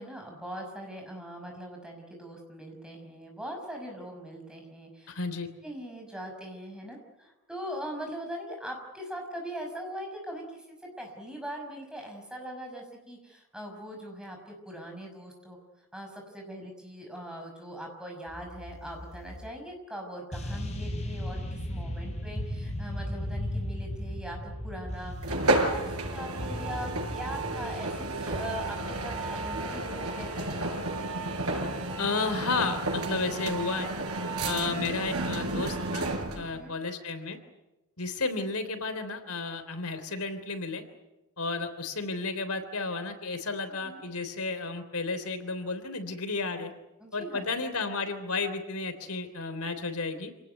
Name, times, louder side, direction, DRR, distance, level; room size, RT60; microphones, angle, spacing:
voice 1, 0.0-5.1 5.6-15.6 15.9-27.9 28.2-30.6 36.3-36.7 43.8-44.0 47.0-47.5, equal, 5° right, 1 dB, 5.8 m, -41 dB
voice 2, 5.1-5.5 32.0-33.9 34.4-36.1 36.3-37.4 38.0-40.8 41.4-46.7 47.1-50.3, left 3 dB, 90° left, 9 dB, 3.5 m, -32 dB
sound 1, 18.3-19.5 20.3-34.0, left 1 dB, 30° left, 6.9 m, -38 dB
sound 2, 25.2-36.5, right 2 dB, 90° right, 5.9 m, -32 dB
27.0 x 18.5 x 9.5 m, 0.98 s
head